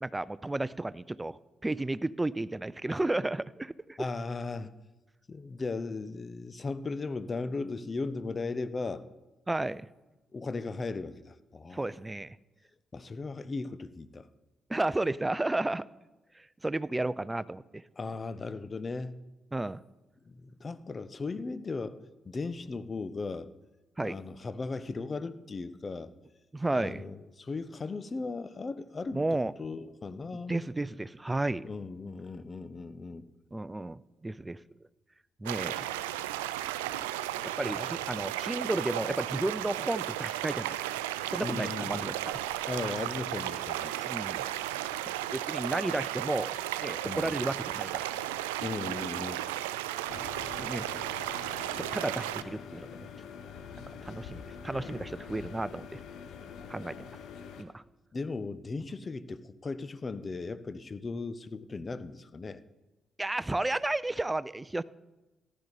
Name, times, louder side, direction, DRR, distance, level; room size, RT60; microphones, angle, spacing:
voice 1, 0.0-4.1 9.5-9.9 11.7-12.4 14.7-15.9 16.4-17.8 19.5-19.8 24.0-24.2 26.5-27.0 29.1-29.5 30.5-31.6 33.5-34.6 35.4-35.8 37.4-42.4 44.0-44.5 45.1-48.1 50.6-50.9 51.7-53.1 54.0-56.0 56.7-57.1 57.6-57.8 63.2-64.8, right 2 dB, 20° right, 19 dB, 0.5 m, -33 dB
voice 2, 4.0-4.7 5.3-9.1 10.3-11.8 12.9-14.3 18.0-19.2 20.3-22.0 22.3-23.5 24.0-26.1 26.7-29.2 29.6-30.6 31.6-33.3 35.7-35.8 37.7-37.9 41.4-42.1 42.7-43.9 47.0-47.3 48.6-49.4 58.1-62.6, left 3 dB, 40° left, 14 dB, 0.8 m, -37 dB
sound 1, 35.5-52.4, right 13 dB, 85° right, 0.4 m, -34 dB
sound 2, 50.1-57.6, left 7 dB, 70° left, 1.0 m, -45 dB
14.5 x 11.5 x 4.1 m, 1.1 s
hypercardioid pair, 40°, 0 cm